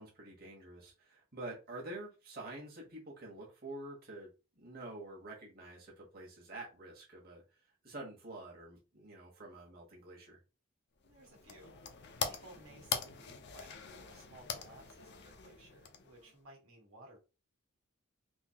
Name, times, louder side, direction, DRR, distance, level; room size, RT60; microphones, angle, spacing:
voice 1, 0.0-4.3 4.6-10.4, right 2 dB, 45° right, -2 dB, 1.3 m, -48 dB
sound 1, 11.0-16.4, left 6 dB, 55° left, 0.6 m, -42 dB
voice 2, 11.0-11.7 12.3-17.2, right 2 dB, 80° right, -1 dB, 1.4 m, -58 dB
3.8 x 2.7 x 2.8 m, 0.30 s
head